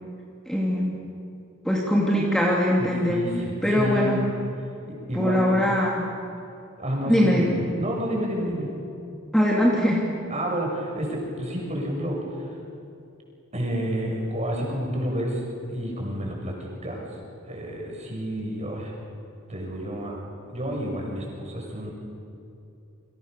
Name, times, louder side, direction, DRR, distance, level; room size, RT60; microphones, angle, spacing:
voice 1, 0.5-0.9 1.6-3.2 3.6-4.2 5.1-6.0 7.1-7.6 9.3-10.0, equal, 5° left, -3 dB, 3.0 m, -21 dB
voice 2, 2.8-4.2 4.9-5.5 6.8-8.7 10.3-12.5 13.5-15.4 15.7-17.0 17.5-18.9 19.5-20.2 20.5-21.9, equal, 35° right, -1 dB, 7.1 m, -30 dB
29.5 x 25.5 x 6.9 m, 2.6 s
head